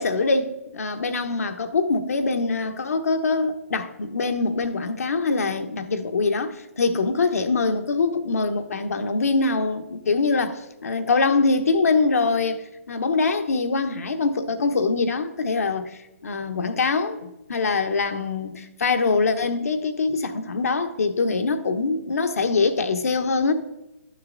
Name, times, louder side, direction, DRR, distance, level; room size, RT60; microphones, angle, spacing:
voice 1, 0.0-23.5, left 4 dB, 75° left, 1.0 m, -23 dB
12.0 x 6.6 x 3.9 m
hypercardioid pair, 145°, 8 cm